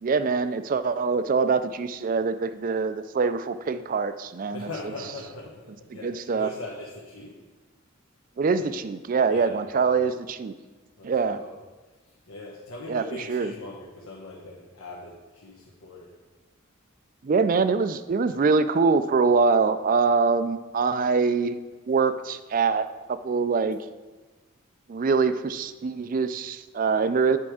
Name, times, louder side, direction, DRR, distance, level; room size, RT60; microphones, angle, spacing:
voice 1, 0.0-4.7 6.0-6.5 8.4-10.5 11.0-11.4 12.9-13.5 17.2-21.6 21.9-23.8 24.9-27.4, right 4 dB, 40° right, 12 dB, 0.3 m, -24 dB
voice 2, 4.5-7.3 9.2-10.0 11.0-11.6 12.0-16.1, left 2 dB, 90° left, -3 dB, 1.2 m, -40 dB
8.6 x 4.6 x 4.8 m, 1.3 s
head